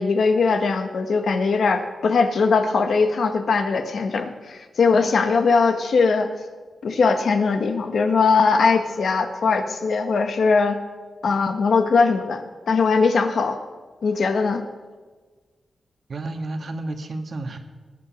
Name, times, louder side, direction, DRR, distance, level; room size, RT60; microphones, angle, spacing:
voice 1, 0.0-6.3 6.8-10.8 11.2-13.6 14.0-14.6, left 4 dB, 70° left, 7 dB, 1.3 m, -20 dB
voice 2, 16.1-17.6, right 2 dB, 55° right, 6 dB, 1.6 m, -31 dB
18.5 x 9.6 x 6.2 m, 1.4 s
cardioid pair, 90°, 0 cm